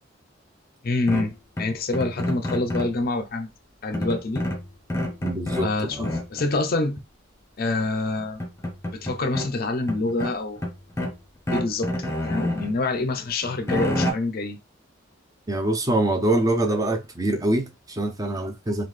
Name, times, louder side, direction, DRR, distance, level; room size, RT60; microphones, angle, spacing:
voice 1, 0.8-3.5 3.8-4.5 5.6-7.0 7.6-8.4 8.9-10.6 11.5-14.6, left 2 dB, 45° left, 0.5 m, -26 dB
sound 1, 1.1-3.0 3.9-5.7 6.0-6.5 7.8-7.9 8.2-9.5 9.9-11.2 11.5-12.7 13.2-14.1, left 1 dB, 15° left, 0.7 m, -28 dB
voice 2, 5.2-6.1 15.5-18.9, right 1 dB, 15° right, 0.5 m, -24 dB
3.7 x 2.4 x 3.1 m
head